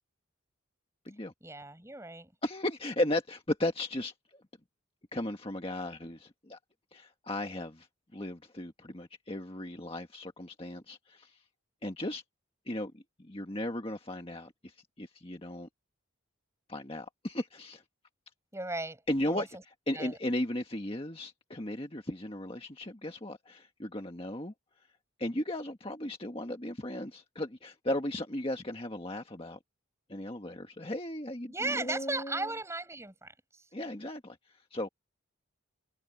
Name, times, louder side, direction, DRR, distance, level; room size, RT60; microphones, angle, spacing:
voice 1, 1.4-2.3 18.5-19.0 19.3-19.5 19.9-20.1 31.5-33.3, right 2 dB, 15° right, 8.0 m, -36 dB
voice 2, 2.4-4.1 5.1-6.6 6.9-7.9 8.1-11.3 11.8-12.2 12.7-15.7 16.7-17.8 19.1-24.5 25.2-29.6 30.1-32.5 33.7-34.4 34.7-34.9, left 1 dB, 25° left, 1.6 m, -36 dB
head